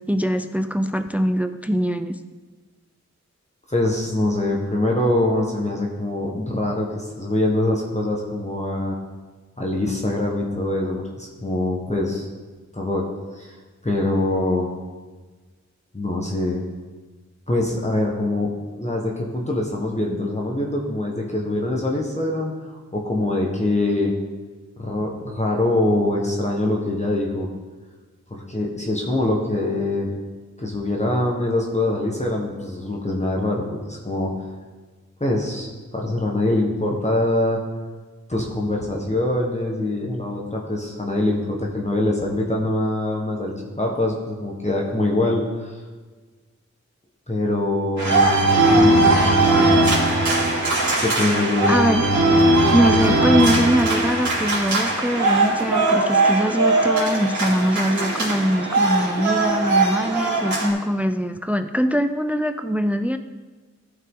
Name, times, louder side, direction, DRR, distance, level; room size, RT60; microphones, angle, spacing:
voice 1, 0.1-2.2 51.7-52.0 52.7-63.2, equal, 5° right, 10 dB, 0.4 m, -22 dB
voice 2, 3.7-9.0 9.6-12.3 12.7-13.1 13.3-13.5 13.8-14.7 15.9-16.7 17.5-18.5 18.8-24.1 24.8-27.5 28.3-30.1 30.6-34.3 35.2-37.6 38.3-45.8 47.3-48.4 48.7-49.7 51.0-51.9, left 1 dB, 25° left, -2 dB, 1.3 m, -24 dB
sound 1, 48.0-60.7, right 2 dB, 70° right, 2.9 m, -19 dB
14.5 x 5.7 x 3.8 m, 1.4 s
wide cardioid pair, 65°, 29 cm